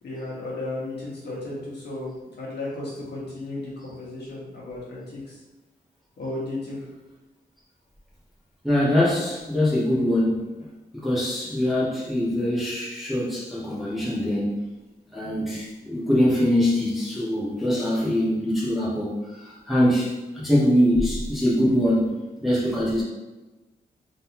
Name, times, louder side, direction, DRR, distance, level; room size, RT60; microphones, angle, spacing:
voice 1, 0.0-5.4 6.2-6.8, left 2 dB, 75° left, -6 dB, 1.5 m, -34 dB
voice 2, 8.6-10.4 11.0-14.6 15.1-19.1 19.4-22.1 22.4-23.0, left 1 dB, ahead, -8 dB, 1.0 m, -23 dB
3.7 x 3.7 x 2.9 m, 1.1 s
wide cardioid pair, 175°, 17 cm